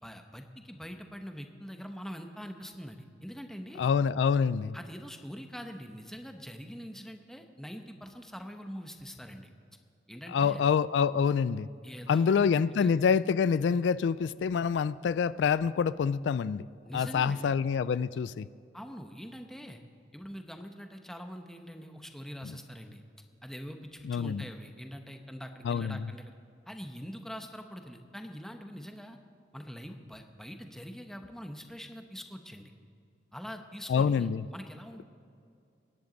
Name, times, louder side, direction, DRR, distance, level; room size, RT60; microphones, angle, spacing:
voice 1, 0.0-3.9 4.7-9.5 10.1-10.7 11.8-12.9 16.9-17.6 18.7-19.8 20.1-23.0 23.4-26.3 26.7-29.2 29.5-32.7 33.3-35.0, equal, 5° left, 5 dB, 0.9 m, -44 dB
voice 2, 3.8-4.7 10.3-11.7 12.1-16.6 16.9-18.5 24.0-24.4 25.7-26.0 33.9-34.4, left 6 dB, 85° left, 18 dB, 0.3 m, -26 dB
23.5 x 10.5 x 3.9 m, 2.5 s
head